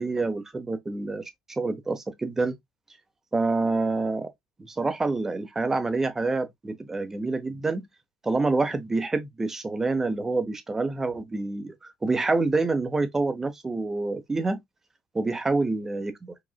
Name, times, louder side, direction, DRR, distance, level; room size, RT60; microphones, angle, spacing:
voice 1, 0.0-2.6 3.3-4.3 4.6-7.9 8.2-14.6 15.1-16.3, right 3 dB, 20° right, 0.9 m, -27 dB
5.0 x 2.4 x 2.3 m
supercardioid pair, 75°, 2 cm